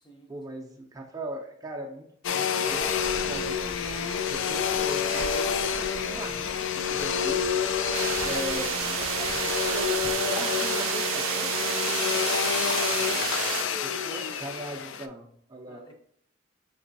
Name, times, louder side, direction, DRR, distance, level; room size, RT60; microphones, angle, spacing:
voice 1, 0.3-3.7 4.3-7.7 8.2-11.5 13.8-15.8, right 1 dB, 15° right, 0 dB, 0.4 m, -39 dB
Domestic sounds home sounds, 2.2-15.1, left 7 dB, 70° left, 0.3 m, -28 dB
Breathing, 2.6-10.1, equal, 45° left, 1.3 m, -42 dB
sound 1, 7.9-13.6, right 10 dB, 85° right, 0.3 m, -30 dB
voice 2, 11.8-13.4 13.9-14.3 15.7-15.9, equal, 20° left, 1 dB, 0.6 m, -53 dB
5.3 x 2.9 x 2.7 m, 0.67 s
head